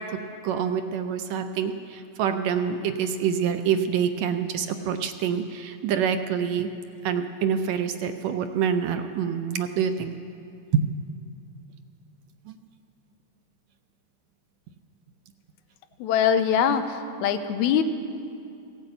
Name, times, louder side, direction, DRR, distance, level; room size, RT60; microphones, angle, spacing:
voice 1, 0.0-6.7 7.0-10.2 10.7-10.8 12.5-12.6, right 7 dB, 80° right, 8 dB, 1.7 m, -26 dB
voice 2, 16.0-17.8, left 8 dB, 90° left, 9 dB, 2.0 m, -23 dB
16.5 x 8.4 x 7.8 m, 2.5 s
omnidirectional pair, 3.4 m